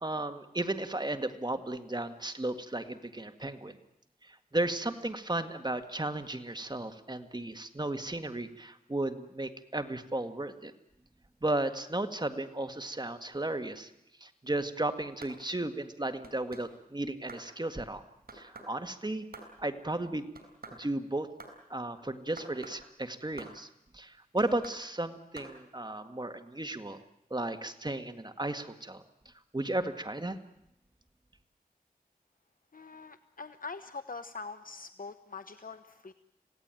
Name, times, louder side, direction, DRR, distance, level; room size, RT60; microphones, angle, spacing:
voice 1, 0.0-3.8 4.2-10.7 11.4-13.9 14.2-18.1 18.3-19.3 19.6-20.3 20.8-21.3 21.7-23.7 23.9-27.0 27.3-29.0 29.5-30.4, right 2 dB, 30° right, 7 dB, 1.9 m, -34 dB
sound 1, 15.2-15.4 16.2-16.7 17.3-17.5 18.3-18.7 19.3-19.5 20.3-20.8 21.4-21.6 22.4-22.8 23.4-23.6 24.4-24.8 25.4-25.5, right 3 dB, 80° right, 4.5 m, -47 dB
voice 2, 32.7-36.1, left 4 dB, 65° left, 10 dB, 0.9 m, -43 dB
26.5 x 17.0 x 9.2 m, 0.84 s
wide cardioid pair, 50°, 15 cm